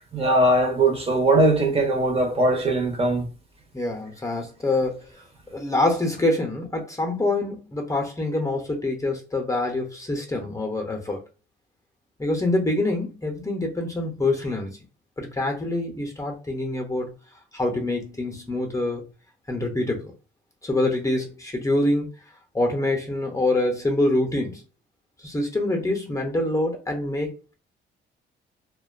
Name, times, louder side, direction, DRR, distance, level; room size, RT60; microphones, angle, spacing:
voice 1, 0.1-3.3, right 2 dB, 30° right, 0.8 m, -20 dB
voice 2, 3.7-5.1 5.5-11.2 12.2-14.8 15.2-17.1 17.5-19.1 19.5-20.1 20.6-22.1 22.5-24.6 25.2-27.5, left 2 dB, 15° left, 0.7 m, -25 dB
2.5 x 2.2 x 2.4 m
cardioid pair, 90°, 20 cm